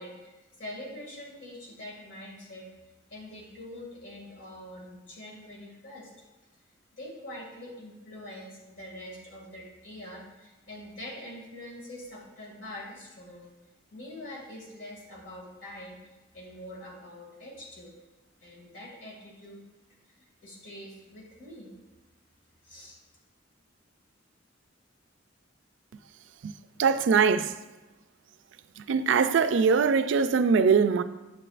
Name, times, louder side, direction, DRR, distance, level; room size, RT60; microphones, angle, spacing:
voice 1, 0.0-2.7 3.1-6.1 7.0-13.5 13.9-16.0 16.3-17.9 18.4-19.6 20.1-21.7 22.6-23.0, left 1 dB, 70° left, 2.2 m, -44 dB
voice 2, 26.8-27.5 28.8-31.0, right 5 dB, 70° right, 0.4 m, -22 dB
9.8 x 6.9 x 2.5 m
head